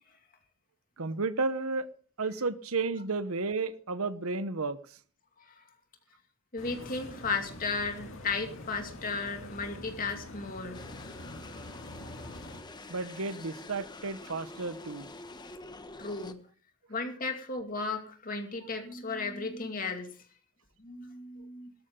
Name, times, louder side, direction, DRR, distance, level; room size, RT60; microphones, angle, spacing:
voice 1, 1.0-1.9 2.2-4.8 12.9-15.1, right 3 dB, 80° right, 1.1 m, -32 dB
voice 2, 6.5-10.8 16.0-16.4 16.9-20.2 20.8-21.7, left 4 dB, 40° left, 2.4 m, -35 dB
sound 1, 6.6-12.6, left 1 dB, 65° left, 2.3 m, -45 dB
sound 2, 10.7-16.4, left 2 dB, 20° left, 1.1 m, -46 dB
17.5 x 13.5 x 3.8 m
head